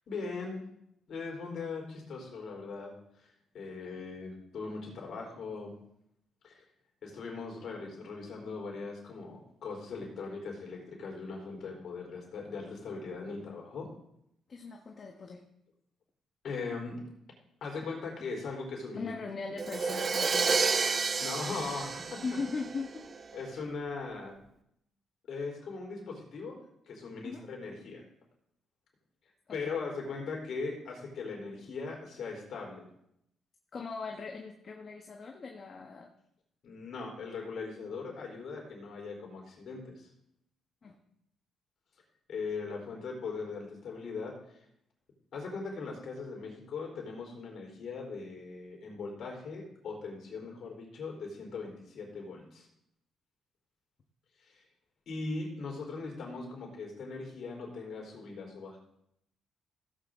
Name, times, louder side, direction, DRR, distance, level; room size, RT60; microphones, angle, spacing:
voice 1, 0.1-0.7 1.1-5.8 6.4-6.6 7.0-13.9 16.4-17.0 17.6-19.1 21.2-22.4 23.3-24.4 25.3-26.6 26.9-28.0 29.5-32.8 36.6-40.1 42.3-44.6 45.3-52.7 54.4-54.7 55.1-58.8, left 4 dB, 65° left, 0 dB, 4.0 m, -40 dB
voice 2, 14.5-15.4 18.9-20.8 22.2-22.9 27.2-27.4 29.5-29.7 33.7-36.1 40.8-41.0, left 4 dB, 45° left, 2 dB, 1.3 m, -39 dB
Crash cymbal, 19.6-23.3, right 4 dB, 40° right, 0.7 m, -30 dB
16.0 x 8.2 x 3.8 m, 0.77 s
cardioid pair, 90°, 0 cm